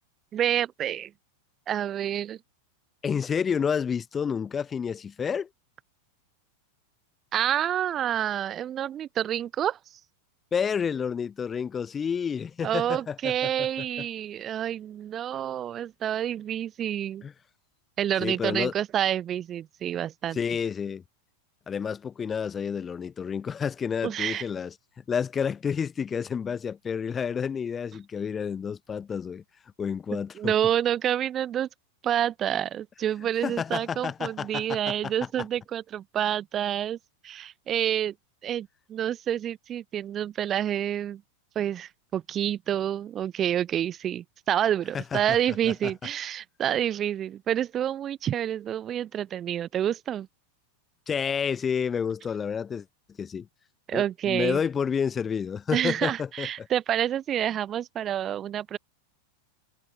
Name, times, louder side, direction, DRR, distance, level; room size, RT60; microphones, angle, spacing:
voice 1, 0.3-1.1 1.7-2.4 7.3-9.8 12.6-17.3 18.0-20.4 24.0-24.4 30.1-31.7 32.0-37.0 37.2-38.1 38.4-41.2 41.6-50.3 53.9-54.6 55.7-58.8, right 10 dB, 30° right, 0.4 m, -28 dB
voice 2, 3.0-5.5 10.5-13.9 17.2-17.3 18.2-18.7 20.3-21.0 21.7-24.7 25.1-29.4 29.8-30.5 33.4-35.1 44.9-45.2 45.6-45.9 51.1-52.8 53.2-53.5 53.9-56.7, left 7 dB, 20° left, 0.7 m, -30 dB
figure-of-eight pair, 90°, 0 cm